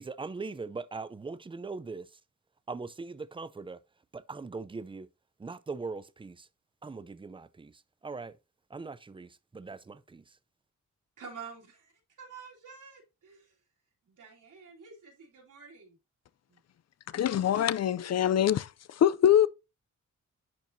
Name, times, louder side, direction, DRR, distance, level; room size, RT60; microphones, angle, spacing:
voice 1, 0.0-2.2 2.7-3.8 4.1-5.1 5.4-6.5 6.8-8.4 8.7-10.4, right 4 dB, 15° right, 0.4 m, -41 dB
voice 2, 11.2-11.9 12.2-13.5 14.1-16.0 16.5-16.6, right 5 dB, 85° right, 3.3 m, -48 dB
voice 3, 17.1-18.7 19.0-19.5, left 10 dB, 60° left, 0.5 m, -23 dB
10.5 x 4.5 x 2.6 m
wide cardioid pair, 140°, 30 cm